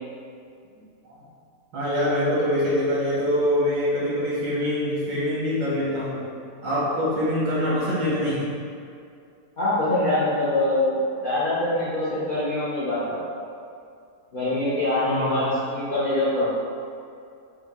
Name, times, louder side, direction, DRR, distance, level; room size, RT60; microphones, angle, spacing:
voice 1, 1.7-6.2 6.6-8.4 15.0-15.5, left 1 dB, 90° right, -7 dB, 1.8 m, -24 dB
voice 2, 9.6-13.2 14.3-16.5, left 1 dB, 55° left, -11 dB, 0.5 m, -24 dB
4.4 x 2.3 x 3.5 m, 2.4 s
omnidirectional pair, 1.8 m